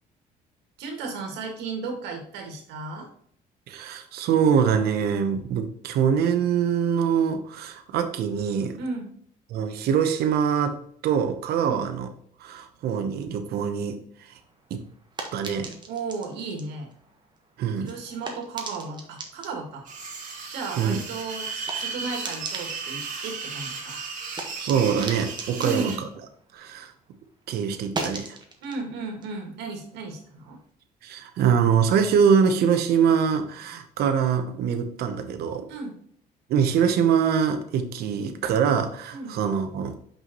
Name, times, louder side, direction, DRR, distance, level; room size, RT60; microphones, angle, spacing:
voice 1, 0.8-3.1 8.8-9.1 11.6-11.9 15.9-16.9 17.8-19.8 20.5-24.0 25.6-26.0 28.6-30.6 35.7-36.0 39.1-39.4, right 3 dB, 85° right, 3 dB, 1.8 m, -34 dB
voice 2, 3.7-8.8 9.5-10.8 11.0-12.1 12.4-14.3 14.7-14.8 15.3-15.7 17.6-17.9 20.8-21.0 24.6-25.9 26.5-26.9 27.5-28.4 31.0-35.7 36.5-39.9, right 7 dB, 70° right, 7 dB, 0.9 m, -24 dB
sound 1, 14.3-27.1 27.4-30.6, right 3 dB, 25° right, 1.3 m, -41 dB
sound 2, 19.9-26.0, right 5 dB, 50° right, 2.0 m, -35 dB
5.6 x 5.6 x 3.0 m, 0.64 s
cardioid pair, 110°, 17 cm